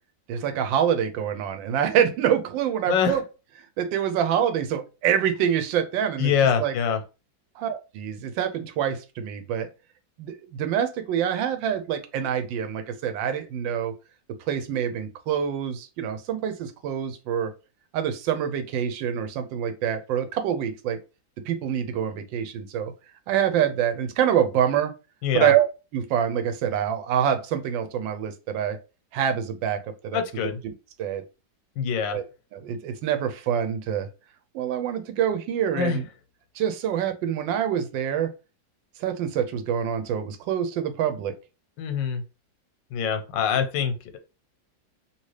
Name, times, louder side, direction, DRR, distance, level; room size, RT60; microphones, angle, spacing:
voice 1, 0.3-3.2 3.8-6.3 6.6-6.7 7.6-9.7 10.2-13.9 14.5-17.5 17.9-21.0 21.4-22.9 23.3-24.9 25.3-25.7 25.9-28.8 29.1-30.7 31.0-31.2 32.1-32.2 32.5-34.1 34.5-36.1 36.5-38.3 39.0-41.3, right 9 dB, 80° right, 8 dB, 1.3 m, -26 dB
voice 2, 6.2-7.0 25.2-25.5 30.1-30.6 31.8-32.2 35.8-36.0 41.8-42.2 42.9-44.2, left 7 dB, 85° left, 8 dB, 1.3 m, -24 dB
2.9 x 2.8 x 3.1 m, 0.30 s
omnidirectional pair, 2.0 m